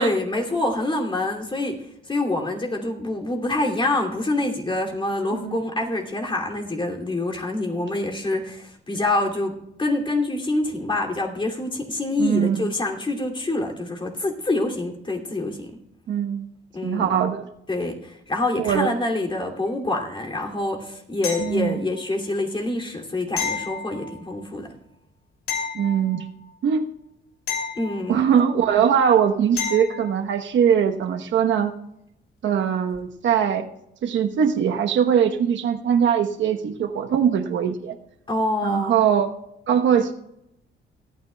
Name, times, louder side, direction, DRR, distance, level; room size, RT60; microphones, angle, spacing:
voice 1, 0.0-9.5 9.8-15.7 16.7-17.1 17.7-24.7 27.8-28.3 38.3-38.9, left 2 dB, 25° left, 1 dB, 2.7 m, -26 dB
voice 2, 12.2-12.7 16.1-16.5 16.8-17.5 18.6-18.9 21.4-21.8 25.7-26.2 26.6-26.9 28.1-31.7 32.4-33.7 34.0-38.0 38.6-39.3 39.7-40.1, right 8 dB, 70° right, 6 dB, 1.1 m, -21 dB
sound 1, 21.2-22.0 23.4-24.4 25.5-26.5 27.5-28.5 29.6-30.2 32.9-33.0, left 6 dB, 85° left, 2.8 m, -31 dB
28.0 x 9.4 x 2.3 m, 0.81 s
cardioid pair, 90°, 20 cm